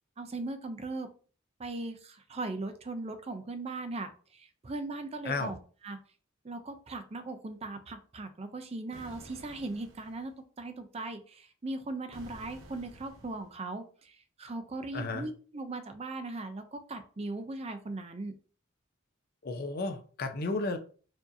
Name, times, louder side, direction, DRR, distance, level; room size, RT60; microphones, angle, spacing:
voice 1, 0.2-1.1 1.6-5.6 5.8-6.0 6.4-10.3 10.6-18.3, right 2 dB, 30° right, 8 dB, 0.5 m, -39 dB
sound 1, 8.9-10.3 12.1-13.6, right 1 dB, 75° right, 0.7 m, -51 dB
voice 2, 14.9-15.3 19.4-20.8, left 3 dB, 45° left, 6 dB, 0.5 m, -33 dB
4.6 x 2.7 x 2.6 m, 0.40 s
head